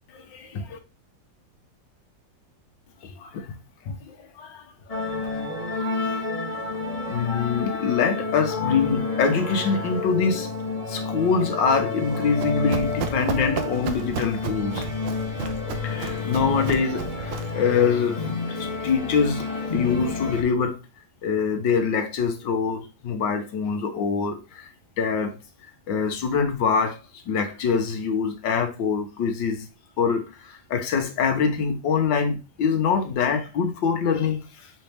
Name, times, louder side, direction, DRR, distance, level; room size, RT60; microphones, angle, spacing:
voice 1, 0.1-0.8 3.2-3.5 3.8-5.1 5.7-6.0 6.4-6.6 7.1-10.5 10.9-14.8 15.8-20.8 21.2-24.7 25.0-25.3 25.9-29.7 30.0-34.7, left 5 dB, 75° left, 1.8 m, -25 dB
sound 1, 4.9-20.4, left 4 dB, 20° left, 1.5 m, -30 dB
Run, 12.0-17.6, right 8 dB, 90° right, 1.6 m, -34 dB
6.8 x 4.3 x 3.4 m
omnidirectional pair, 2.0 m